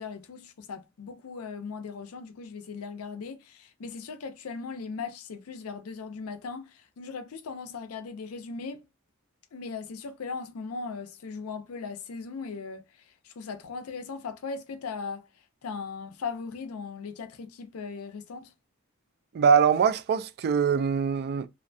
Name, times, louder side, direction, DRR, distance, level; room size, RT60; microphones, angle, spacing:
voice 1, 0.0-8.9 9.5-15.3 15.6-18.5, left 5 dB, 80° left, 0.5 m, -38 dB
voice 2, 19.3-21.5, right 6 dB, 50° right, 0.3 m, -23 dB
2.5 x 2.1 x 2.6 m
head